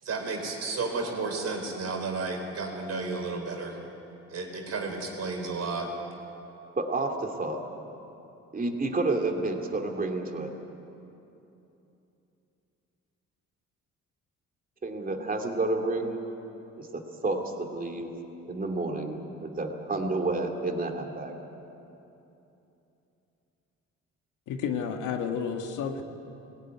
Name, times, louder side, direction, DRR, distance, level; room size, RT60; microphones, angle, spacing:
voice 1, 0.0-3.8 4.3-5.9, right 3 dB, 55° right, 2 dB, 4.3 m, -32 dB
voice 2, 6.8-7.6 8.5-10.5 14.8-16.2 16.8-18.1 18.5-21.3, right 2 dB, 30° right, 3 dB, 2.6 m, -30 dB
voice 3, 24.5-26.0, left 7 dB, 85° left, 5 dB, 1.7 m, -31 dB
18.5 x 17.5 x 9.5 m, 2.9 s
cardioid pair, 90°, 30 cm